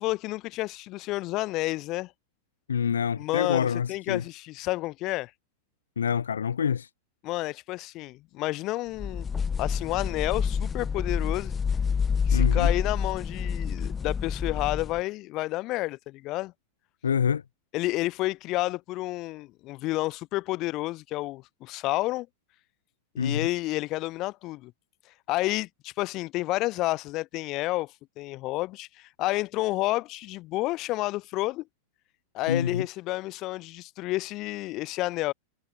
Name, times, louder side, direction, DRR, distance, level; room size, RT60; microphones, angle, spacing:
voice 1, 0.0-2.1 3.2-5.3 7.2-9.3 9.6-11.5 12.3-16.5 17.7-22.3 23.1-24.7 25.3-31.6 32.3-35.3, left 19 dB, 40° left, 3.3 m, -30 dB
voice 2, 2.7-4.2 6.0-6.9 12.3-12.7 17.0-17.4 23.2-23.5 32.5-32.9, left 7 dB, 70° left, 1.5 m, -26 dB
sound 1, 9.0-15.0, left 6 dB, 20° left, 1.4 m, -28 dB
figure-of-eight pair, 90°, 0 cm